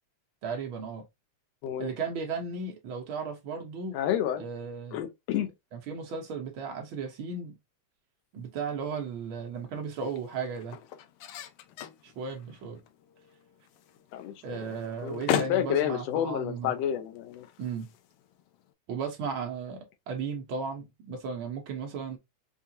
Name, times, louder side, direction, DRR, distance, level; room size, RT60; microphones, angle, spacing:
voice 1, 0.4-1.0 1.8-4.0 4.4-5.0 5.7-7.6 8.3-10.8 12.0-12.8 14.4-16.7 17.6-17.9 18.9-22.2, right 5 dB, 70° right, 1.2 m, -35 dB
voice 2, 3.9-4.5 4.9-5.5 14.1-14.6 15.0-15.2 15.5-17.5, left 10 dB, 75° left, 1.8 m, -30 dB
sound 1, 8.4-18.7, left 9 dB, 90° left, 1.3 m, -39 dB
5.3 x 2.5 x 2.7 m
omnidirectional pair, 3.4 m